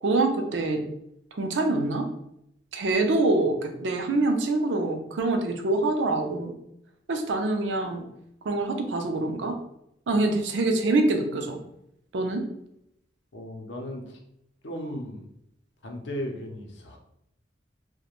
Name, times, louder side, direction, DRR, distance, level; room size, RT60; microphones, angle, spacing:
voice 1, 0.0-0.8 1.3-2.1 2.7-6.5 7.1-8.0 8.4-9.6 10.1-11.6 12.1-12.4, right 2 dB, 75° right, 5 dB, 0.4 m, -25 dB
voice 2, 13.3-14.2 14.6-15.3 15.8-17.0, equal, 75° left, 2 dB, 0.6 m, -36 dB
2.4 x 2.1 x 2.9 m, 0.76 s
head